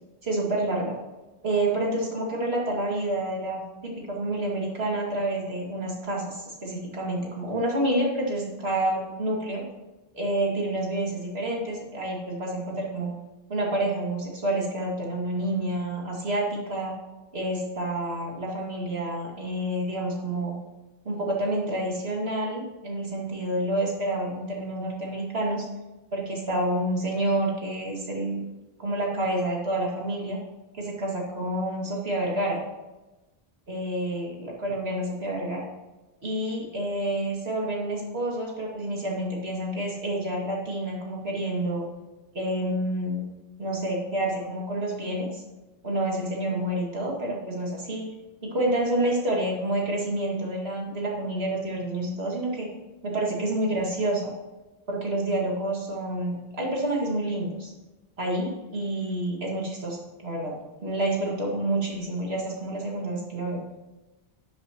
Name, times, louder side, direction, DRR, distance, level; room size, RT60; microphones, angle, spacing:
voice 1, 0.2-0.9 1.4-9.6 10.1-13.1 13.5-16.9 17.3-20.5 21.0-25.7 26.1-28.4 28.8-30.4 30.7-32.6 33.7-35.7 36.2-41.9 42.3-43.2 43.6-45.4 45.8-48.1 48.4-52.7 53.0-54.3 54.9-57.7 58.2-60.5 60.8-63.6, right 1 dB, 85° right, -2 dB, 2.5 m, -28 dB
12.5 x 7.8 x 3.0 m, 1.1 s
omnidirectional pair, 1.0 m